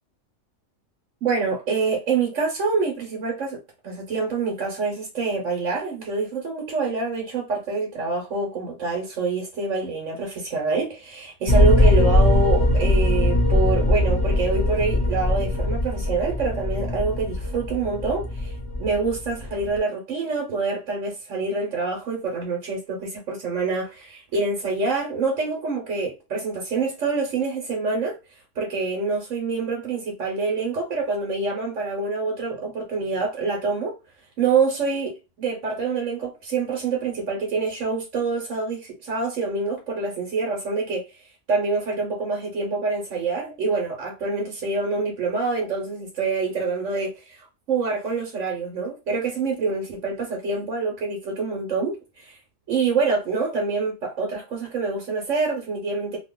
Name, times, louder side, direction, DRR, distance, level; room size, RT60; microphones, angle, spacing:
voice 1, 1.2-28.2 28.5-33.9 34.4-41.0 41.5-52.4 52.7-56.2, right 4 dB, 75° right, 1.3 m, -26 dB
sound 1, 11.5-19.8, left 1 dB, 20° left, 0.8 m, -21 dB
2.9 x 2.3 x 3.5 m
omnidirectional pair, 1.3 m